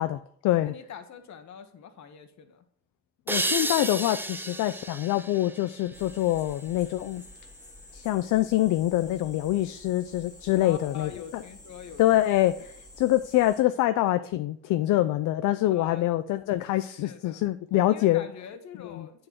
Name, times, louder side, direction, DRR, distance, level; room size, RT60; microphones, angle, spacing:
voice 1, 0.0-0.7 3.3-7.2 7.9-11.4 12.0-18.3 18.9-19.1, left 15 dB, 80° left, 10 dB, 0.5 m, -25 dB
voice 2, 0.6-2.6 10.6-12.2 15.7-16.1 17.0-17.4 17.9-19.3, left 7 dB, 65° left, 8 dB, 1.2 m, -44 dB
sound 1, 3.3-6.7, right 1 dB, 5° right, 0.5 m, -32 dB
sound 2, 5.9-13.6, left 1 dB, 10° left, 1.9 m, -50 dB
8.8 x 3.9 x 5.9 m, 0.63 s
cardioid pair, 90°, 30 cm